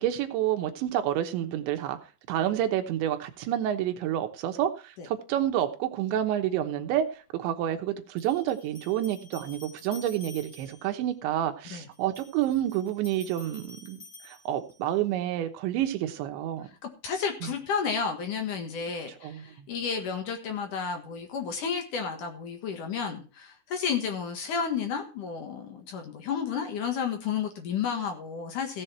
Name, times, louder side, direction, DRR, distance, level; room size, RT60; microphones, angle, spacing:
voice 1, 0.0-2.0 2.3-7.0 7.3-16.7 17.4-17.5 19.2-19.7, right 11 dB, 75° right, 3.2 m, -29 dB
sound 1, 6.9-7.0 8.2-11.0 11.9-15.0, left 3 dB, 35° left, 1.5 m, -50 dB
voice 2, 17.0-28.8, left 6 dB, 60° left, 2.2 m, -32 dB
15.5 x 7.6 x 4.4 m
omnidirectional pair, 5.6 m